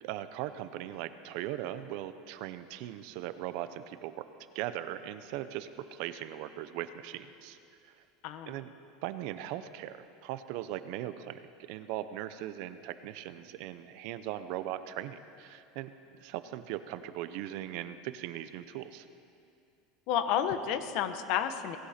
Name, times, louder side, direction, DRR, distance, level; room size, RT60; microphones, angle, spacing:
voice 1, 0.0-4.3 4.5-7.6 8.5-8.7 9.0-15.9 16.2-19.1, right 12 dB, 60° right, 12 dB, 0.7 m, -39 dB
voice 2, 8.2-8.6 20.1-21.8, left 9 dB, 55° left, 10 dB, 1.0 m, -31 dB
18.5 x 16.0 x 4.3 m, 2.5 s
supercardioid pair, 150°, 0 cm